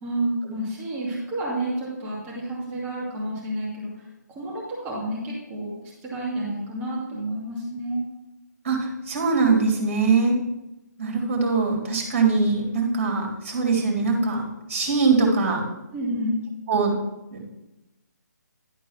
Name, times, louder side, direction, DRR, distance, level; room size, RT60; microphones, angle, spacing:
voice 1, 0.0-5.7 6.0-8.1 9.7-9.8 15.9-16.4, right 1 dB, 15° right, -5 dB, 2.5 m, -30 dB
voice 2, 8.6-10.4 11.0-14.4 14.7-15.6 16.7-16.9 17.3-17.4, right 4 dB, 40° right, 0 dB, 3.2 m, -22 dB
11.5 x 4.6 x 6.0 m, 0.96 s
figure-of-eight pair, 145°, 10 cm